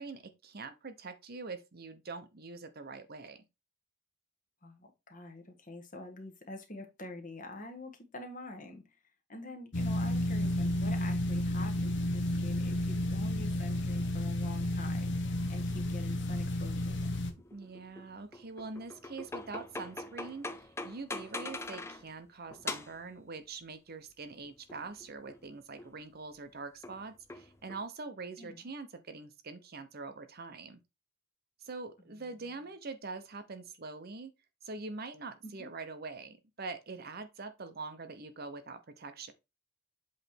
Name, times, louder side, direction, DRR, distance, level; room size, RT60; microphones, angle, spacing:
voice 1, 0.0-3.4 17.5-30.8 31.6-34.3 34.6-39.3, right 3 dB, 45° right, 0.8 m, -44 dB
voice 2, 4.6-8.8 9.3-17.2 28.4-28.6 32.1-32.7 35.4-35.7, left 2 dB, 40° left, 1.5 m, -47 dB
sound 1, 9.7-17.3, left 1 dB, 55° left, 0.9 m, -32 dB
sound 2, 17.3-22.1 22.5-23.1 24.3-25.5 25.8-26.0 26.8-27.8, left 2 dB, 10° left, 0.4 m, -43 dB
8.0 x 3.3 x 4.4 m
head